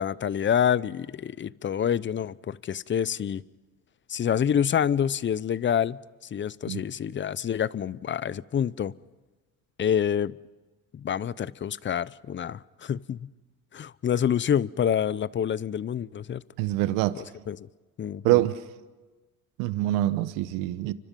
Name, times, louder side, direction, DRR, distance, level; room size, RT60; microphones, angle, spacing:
voice 1, 0.0-3.4 4.1-6.0 6.3-8.9 9.8-10.3 10.9-13.3 13.7-16.4 17.2-17.7 18.0-18.4, left 8 dB, 35° left, 0.7 m, -27 dB
voice 2, 16.6-17.2 18.2-18.6 19.6-20.9, right 16 dB, 85° right, 1.0 m, -25 dB
29.5 x 25.0 x 5.4 m
supercardioid pair, 75°, 32 cm